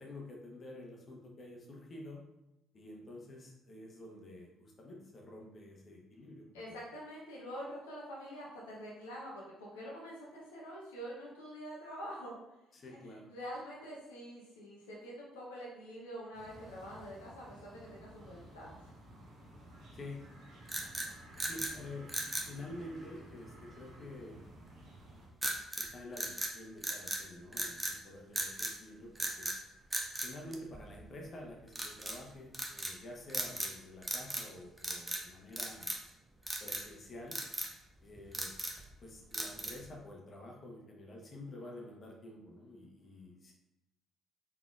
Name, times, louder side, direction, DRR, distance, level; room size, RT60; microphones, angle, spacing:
voice 1, 0.0-2.3 2.7-6.9 12.7-13.3 19.9-20.2 21.4-24.5 25.8-29.5 30.2-35.9 36.6-37.4 38.0-38.5 39.0-43.5, left 1 dB, 45° left, 0 dB, 0.9 m, -49 dB
voice 2, 6.5-12.4 12.8-13.0 13.3-18.8, equal, 80° left, -4 dB, 0.6 m, -46 dB
sound 1, 16.3-25.3, right 1 dB, 60° right, 1.0 m, -54 dB
sound 2, 20.7-21.8 22.1-22.5 25.4-25.9 26.2-27.2 27.5-28.0 28.4-28.8 29.2-29.6 29.9-31.1 31.7-32.2 32.5-33.0 33.3-33.8 34.0-34.5 34.8-35.2 35.6-36.1 36.5-36.9 37.3-37.7 38.2-38.8 39.3-39.9, right 1 dB, 15° right, 0.7 m, -37 dB
4.0 x 3.5 x 2.4 m, 0.93 s
hypercardioid pair, 45°, 0 cm